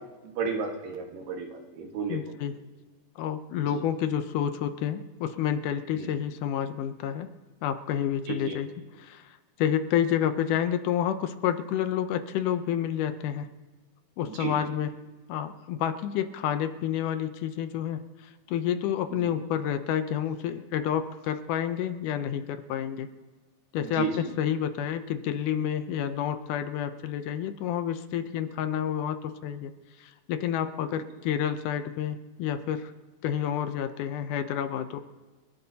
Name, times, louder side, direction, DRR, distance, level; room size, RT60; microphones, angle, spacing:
voice 1, 0.2-2.2 3.7-3.8 5.9-6.1 8.3-8.6 14.2-14.6 23.8-24.2 31.0-31.1, right 6 dB, 85° right, 2 dB, 3.3 m, -33 dB
voice 2, 2.1-2.5 3.2-7.3 7.6-8.7 9.0-9.2 9.6-13.5 14.2-14.9 15.3-18.0 18.5-23.1 23.7-29.7 30.0-32.9 33.2-35.0, left 9 dB, 80° left, 10 dB, 2.2 m, -29 dB
29.0 x 15.0 x 2.8 m, 1.2 s
omnidirectional pair, 3.8 m